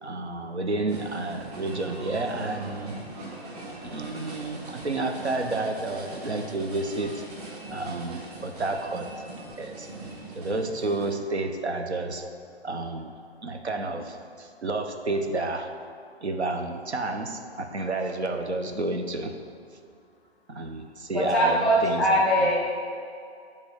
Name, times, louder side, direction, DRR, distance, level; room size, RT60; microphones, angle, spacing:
voice 1, 0.0-2.9 3.8-7.2 7.7-9.1 9.6-9.9 10.4-12.2 12.6-13.1 13.4-15.7 16.2-19.3 20.5-22.5, right 2 dB, 85° right, 5 dB, 0.8 m, -30 dB
sound 1, 0.9-11.1, right 2 dB, 35° right, 1.6 m, -41 dB
voice 2, 21.1-22.6, equal, ahead, -6 dB, 0.7 m, -22 dB
8.0 x 3.6 x 6.0 m, 2.4 s
figure-of-eight pair, 135°, 32 cm